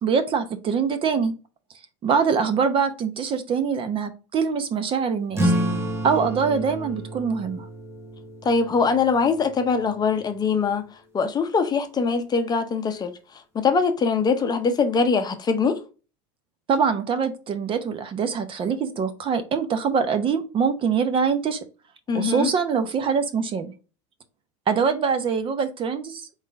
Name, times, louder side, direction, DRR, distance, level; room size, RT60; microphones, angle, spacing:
voice 1, 0.0-1.3 2.0-5.5 6.0-7.7 16.7-21.6 22.1-23.7 24.7-26.2, right 6 dB, 35° right, 0.8 m, -24 dB
sound 1, 5.3-10.4, equal, 15° right, 1.1 m, -29 dB
voice 2, 8.4-10.8 11.1-15.8 22.1-22.5, left 5 dB, 25° left, 0.7 m, -22 dB
4.0 x 3.6 x 3.6 m
supercardioid pair, 110°, 16 cm